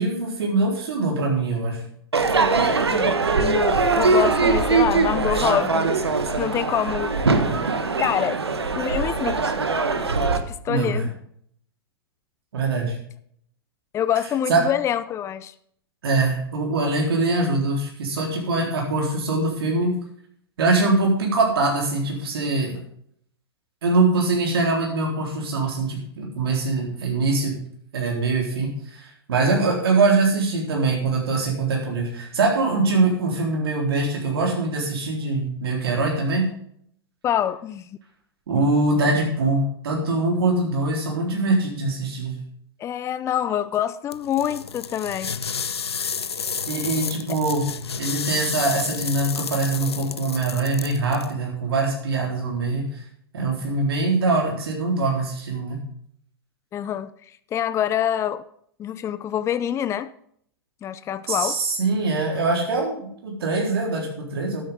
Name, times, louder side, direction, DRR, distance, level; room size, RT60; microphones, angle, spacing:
voice 1, 0.0-1.8 10.7-11.1 12.5-13.0 14.5-14.6 16.0-19.9 20.6-22.8 23.8-27.6 27.9-36.4 38.5-42.4 46.7-47.6 48.0-52.8 53.3-55.8 61.3-64.6, right 3 dB, 70° right, -1 dB, 3.9 m, -23 dB
Crowd / Fireworks, 2.1-10.4, right 4 dB, 90° right, 1.4 m, -21 dB
voice 2, 2.9-5.9 6.4-7.2 8.0-8.4 8.7-9.5 10.5-11.1 13.9-15.5 37.2-37.8 42.8-45.4 56.7-57.1 57.5-58.4 58.8-60.1 60.8-61.6, left 10 dB, 20° left, 14 dB, 0.5 m, -26 dB
sound 1, 44.1-51.3, left 6 dB, 90° left, 0.6 m, -31 dB
12.5 x 10.0 x 3.7 m, 0.65 s
hypercardioid pair, 110°, 13 cm